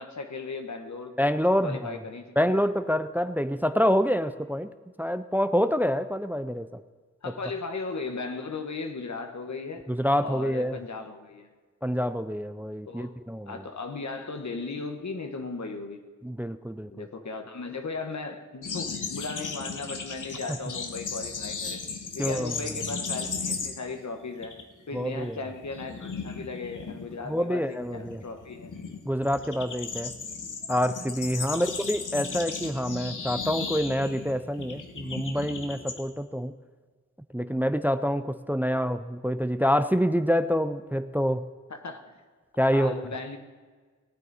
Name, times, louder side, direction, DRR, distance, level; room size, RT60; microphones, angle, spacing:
voice 1, 0.0-1.2 1.6-2.6 7.2-9.9 10.2-11.5 12.9-13.1 13.5-16.0 16.9-21.8 22.1-28.7 31.4-31.7 41.7-42.2 42.7-43.4, left 4 dB, 65° left, 5 dB, 1.2 m, -37 dB
voice 2, 1.2-1.8 2.4-4.7 5.0-6.8 9.9-10.8 11.8-13.6 16.2-17.0 22.2-22.5 24.9-25.3 27.3-28.2 29.0-30.1 30.7-36.5 37.3-41.4 42.6-42.9, equal, 5° right, 12 dB, 0.4 m, -26 dB
sound 1, 18.6-24.0 24.3-24.6 25.0-36.0, left 5 dB, 90° left, 1.2 m, -36 dB
18.0 x 9.4 x 4.1 m, 1.5 s
wide cardioid pair, 65°, 30 cm